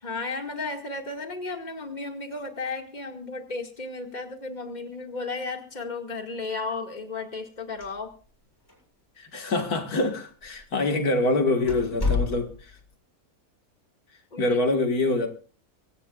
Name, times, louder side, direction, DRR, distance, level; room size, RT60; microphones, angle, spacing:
voice 1, 0.0-8.1 14.3-14.6, left 3 dB, 30° left, 2.2 m, -34 dB
sound 1, 7.7-8.4 8.7-8.8 9.5-9.6 10.4-10.6 11.0-11.1 11.7-12.8, left 4 dB, 15° left, 7.8 m, -29 dB
voice 2, 9.2-12.8 14.4-15.3, left 2 dB, 85° left, 2.3 m, -25 dB
24.0 x 17.0 x 2.4 m
omnidirectional pair, 1.6 m